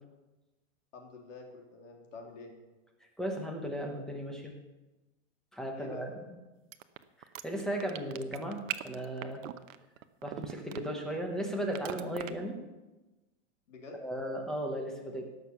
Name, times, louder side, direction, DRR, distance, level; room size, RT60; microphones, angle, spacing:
voice 1, 0.9-2.5 5.8-6.0 13.7-14.0, left 3 dB, 70° left, 1 dB, 3.5 m, -47 dB
voice 2, 3.2-4.5 5.5-6.1 7.4-9.4 10.2-12.6 14.0-15.3, right 1 dB, ahead, 2 dB, 0.9 m, -36 dB
sound 1, 6.7-11.2 11.7-12.3, right 12 dB, 85° right, 0.9 m, -39 dB
17.5 x 6.8 x 6.9 m, 1.1 s
supercardioid pair, 175°, 38 cm